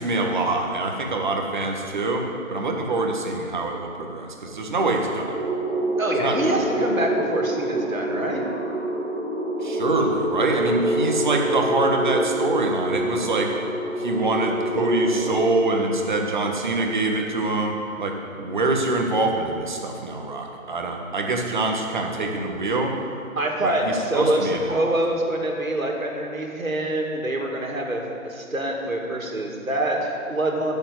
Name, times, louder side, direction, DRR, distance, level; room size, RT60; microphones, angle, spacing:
voice 1, 0.0-5.3 6.2-6.3 9.6-13.5 14.0-22.9 23.6-24.9, right 2 dB, 35° right, 2 dB, 1.5 m, -25 dB
sound 1, 5.2-15.4, right 1 dB, 20° right, 3.0 m, -26 dB
voice 2, 6.0-8.4 23.4-30.7, right 1 dB, 75° right, 1 dB, 2.6 m, -25 dB
14.0 x 7.2 x 8.1 m, 2.6 s
figure-of-eight pair, 155°, 41 cm